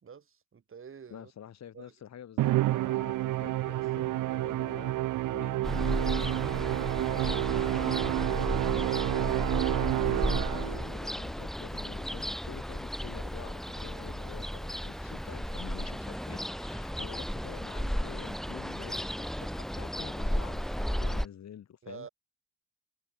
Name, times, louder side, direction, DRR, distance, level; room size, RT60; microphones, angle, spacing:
voice 1, 0.0-1.3 1.7-1.9 21.8-22.1, right 6 dB, 45° right, 5.1 m, -48 dB
voice 2, 1.1-22.1, left 9 dB, 60° left, 5.5 m, -47 dB
Musical instrument, 2.4-10.9, right 16 dB, 90° right, 2.6 m, -29 dB
Ocean, 5.6-21.3, equal, ahead, 1.5 m, -34 dB
cardioid pair, 90°, 30 cm